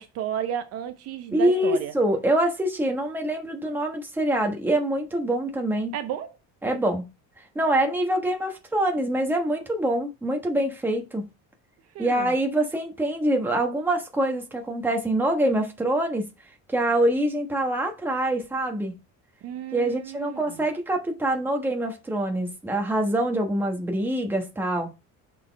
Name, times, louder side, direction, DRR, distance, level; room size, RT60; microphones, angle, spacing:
voice 1, 0.0-1.9 5.9-6.4 11.9-12.3 19.4-20.4, right 9 dB, 50° right, 0.6 m, -32 dB
voice 2, 1.3-5.9 6.6-7.0 7.5-11.3 12.0-16.3 16.7-19.0 19.7-24.9, right 1 dB, 5° right, 1.2 m, -25 dB
6.3 x 4.2 x 4.5 m
cardioid pair, 175°, 31 cm